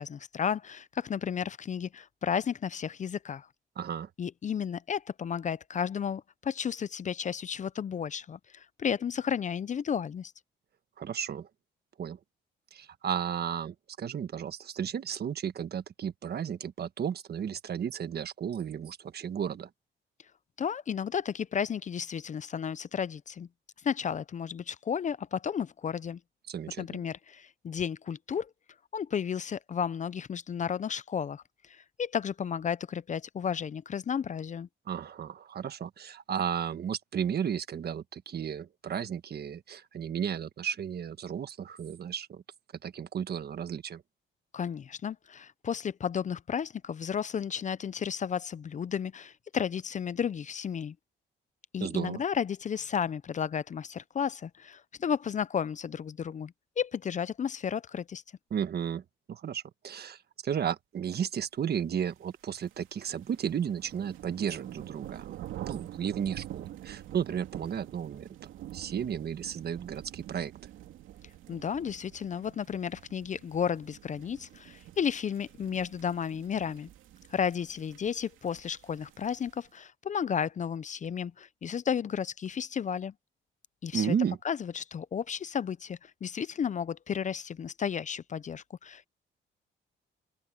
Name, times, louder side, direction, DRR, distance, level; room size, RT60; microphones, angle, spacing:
voice 1, 0.0-3.5 4.2-10.3 20.6-23.5 23.8-26.2 26.8-28.5 28.9-34.7 44.5-51.0 51.7-58.2 71.5-76.9 77.3-83.1 83.8-84.1 84.4-89.1, left 7 dB, 40° left, 0.5 m, -33 dB
voice 2, 3.8-4.1 11.0-11.5 12.0-12.2 12.7-19.7 26.5-27.0 34.9-42.4 42.8-44.0 51.8-52.2 58.5-59.0 59.3-68.3 68.7-70.5 83.9-84.4, right 8 dB, 55° right, 1.4 m, -34 dB
sound 1, 62.2-79.7, right 13 dB, 85° right, 2.6 m, -47 dB
open air
cardioid pair, 90°, 20 cm